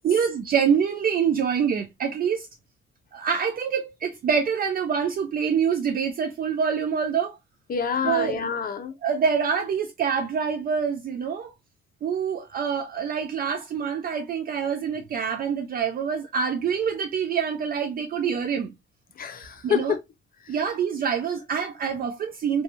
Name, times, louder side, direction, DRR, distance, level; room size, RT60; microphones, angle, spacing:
voice 1, 0.0-2.5 3.1-7.4 8.0-8.4 9.0-11.5 12.0-18.7 19.6-19.9 20.5-22.6, right 7 dB, 50° right, 0.4 m, -26 dB
voice 2, 7.7-8.9 19.2-20.0, left 7 dB, 45° left, 0.6 m, -27 dB
2.6 x 2.3 x 2.7 m
cardioid pair, 90°, 20 cm